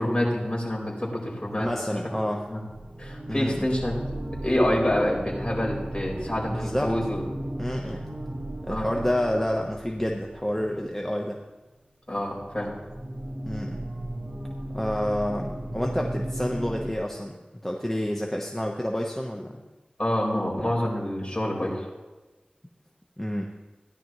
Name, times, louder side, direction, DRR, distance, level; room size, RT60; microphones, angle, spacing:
voice 1, 0.0-2.0 2.5-2.6 3.0-3.9 4.4-7.2 8.7-8.9 12.1-12.7 20.0-21.8, left 1 dB, 35° left, -3 dB, 4.2 m, -27 dB
voice 2, 1.6-2.4 3.3-3.7 6.2-6.9 7.6-8.0 8.7-11.4 13.4-13.8 14.7-17.4 17.6-19.6 23.2-23.4, equal, 10° left, 1 dB, 0.9 m, -29 dB
sound 1, 2.5-11.4 12.2-16.9, right 1 dB, 35° right, 1.4 m, -35 dB
16.0 x 10.5 x 3.0 m, 1.2 s
wide cardioid pair, 50°, 3 cm